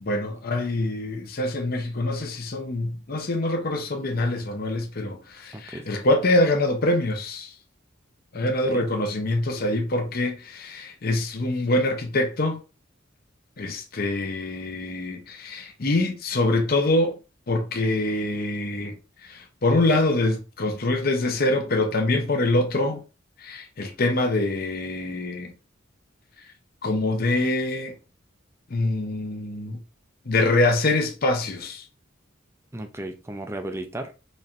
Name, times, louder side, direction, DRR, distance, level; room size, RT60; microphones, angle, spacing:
voice 1, 0.0-7.5 8.3-12.6 13.6-17.1 17.5-18.9 19.2-23.0 23.4-25.5 26.8-27.9 28.7-29.8 30.3-31.8, left 2 dB, 50° left, 0.7 m, -24 dB
voice 2, 5.5-5.8 8.4-8.9 32.7-34.1, right 1 dB, 15° right, 0.5 m, -35 dB
4.1 x 3.2 x 2.5 m
head